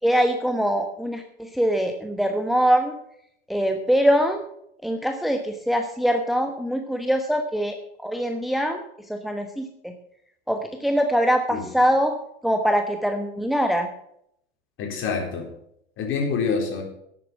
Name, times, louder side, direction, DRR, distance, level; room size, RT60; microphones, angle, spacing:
voice 1, 0.0-3.0 3.5-4.4 4.8-7.8 8.0-8.8 9.1-9.9 10.5-12.2 12.4-13.9, equal, ahead, 5 dB, 1.1 m, -23 dB
voice 2, 14.8-15.5 16.0-16.8, left 5 dB, 45° left, 2 dB, 4.2 m, -26 dB
11.0 x 8.4 x 7.4 m, 0.73 s
figure-of-eight pair, 80°, 30 cm